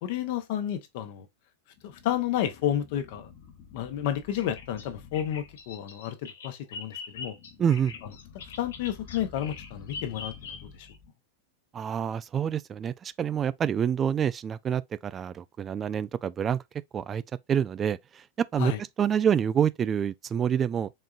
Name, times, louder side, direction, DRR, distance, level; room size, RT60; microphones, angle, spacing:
voice 1, 0.0-1.3 1.8-3.3 3.7-7.4 8.3-10.9 18.6-18.8, left 11 dB, 60° left, 1.0 m, -31 dB
sound 1, 1.7-5.8 7.1-11.1, left 6 dB, 45° left, 1.3 m, -50 dB
Bird vocalization bird call bird song, 4.4-11.0, left 5 dB, 80° left, 1.1 m, -43 dB
voice 2, 7.6-7.9 11.7-16.6 16.9-17.2 17.5-18.7 19.0-20.9, right 8 dB, 25° right, 0.3 m, -27 dB
4.3 x 3.7 x 2.4 m
hypercardioid pair, 115°, 0 cm